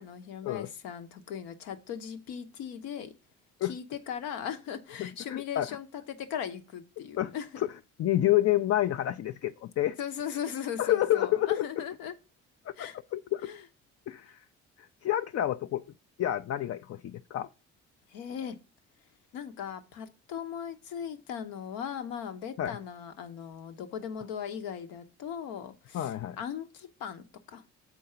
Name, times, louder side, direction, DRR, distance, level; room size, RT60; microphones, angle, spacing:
voice 1, 0.0-3.1 3.6-7.5 10.0-12.1 12.8-13.0 13.5-13.6 18.1-18.6 19.3-27.3 27.5-27.6, left 8 dB, 70° left, 1.0 m, -38 dB
voice 2, 5.0-5.7 7.0-7.7 8.0-10.0 10.8-11.7 12.8-13.5 14.1-14.4 15.0-15.8 16.2-17.5 22.6-22.8 25.9-26.4, left 13 dB, 45° left, 0.5 m, -29 dB
7.1 x 4.6 x 5.7 m
hypercardioid pair, 50°, 36 cm